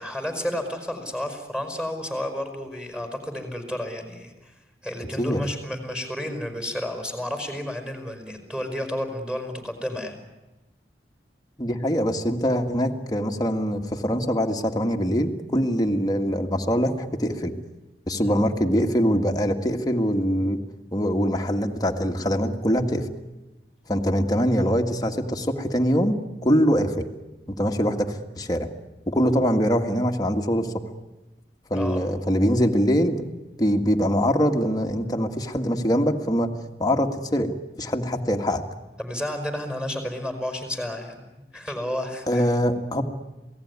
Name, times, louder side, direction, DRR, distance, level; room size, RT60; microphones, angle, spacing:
voice 1, 0.0-4.5 4.8-10.2 18.2-18.4 31.7-32.2 39.0-41.2 41.5-42.4, left 1 dB, 5° right, 6 dB, 5.2 m, -31 dB
voice 2, 11.6-17.5 18.1-20.6 20.9-23.1 23.9-27.1 27.5-28.7 29.1-30.7 31.7-33.3 33.6-36.5 36.8-38.6 42.3-43.0, equal, 25° left, 3 dB, 1.9 m, -23 dB
27.5 x 18.5 x 9.7 m, 1.0 s
head